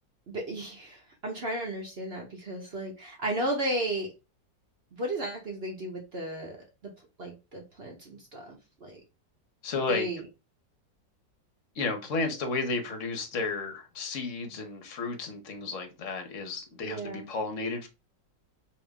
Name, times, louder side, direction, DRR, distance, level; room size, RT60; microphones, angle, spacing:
voice 1, 0.3-4.1 5.0-6.6 7.2-9.0 9.9-10.2 16.8-17.3, right 1 dB, 45° right, 0.9 m, -34 dB
voice 2, 9.6-10.1 11.7-17.9, left 3 dB, 55° left, 1.0 m, -33 dB
3.5 x 2.9 x 3.3 m
omnidirectional pair, 2.0 m